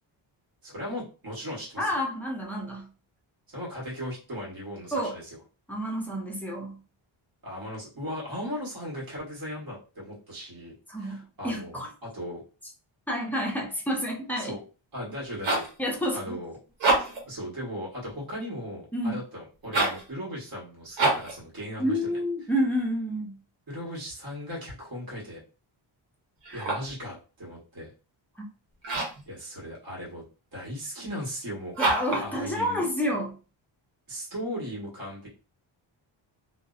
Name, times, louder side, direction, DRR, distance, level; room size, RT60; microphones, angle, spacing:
voice 1, 0.6-2.0 3.5-5.4 7.4-12.4 14.4-14.6 14.9-15.6 16.1-16.5 17.3-22.0 23.7-25.4 26.5-27.9 29.3-30.2 30.5-31.8 32.2-32.8 34.1-35.3, equal, 45° right, -4 dB, 1.2 m, -37 dB
voice 2, 1.8-2.9 4.9-5.2 5.7-6.8 10.9-11.9 13.1-14.5 15.8-16.4 18.9-19.1 21.8-23.4 26.5-26.7 31.8-33.4, equal, 5° left, -1 dB, 0.5 m, -29 dB
sound 1, 15.1-15.8 16.7-17.3 19.6-20.1 20.9-21.4 26.4-27.0 28.8-29.3 31.7-32.3, right 2 dB, 65° right, 1.0 m, -26 dB
2.6 x 2.0 x 2.3 m, 0.34 s
wide cardioid pair, 130°, 49 cm